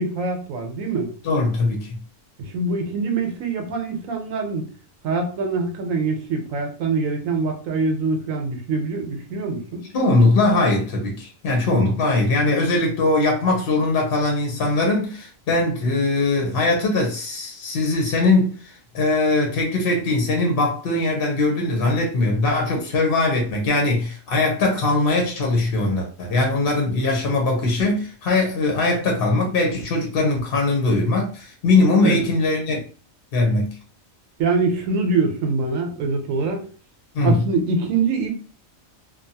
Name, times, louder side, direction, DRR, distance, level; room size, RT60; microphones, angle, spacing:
voice 1, 0.0-1.1 2.5-4.7 5.0-9.8 32.0-32.2 34.4-36.7 37.2-38.3, right 4 dB, 80° right, 1.0 m, -24 dB
voice 2, 1.2-2.0 9.9-18.5 18.9-32.8 33.3-33.8 37.1-37.4, left 2 dB, 55° left, 0.8 m, -20 dB
2.7 x 2.2 x 2.7 m
omnidirectional pair, 1.4 m